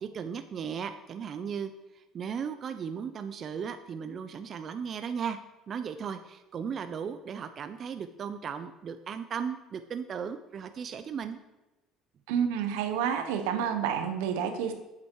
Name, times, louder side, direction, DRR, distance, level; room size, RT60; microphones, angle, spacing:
voice 1, 0.0-5.4 5.7-11.4, right 7 dB, 45° right, 9 dB, 0.5 m, -36 dB
voice 2, 12.3-14.7, right 8 dB, 90° right, 7 dB, 1.1 m, -29 dB
8.4 x 7.6 x 4.7 m, 1.0 s
supercardioid pair, 95°, 0 cm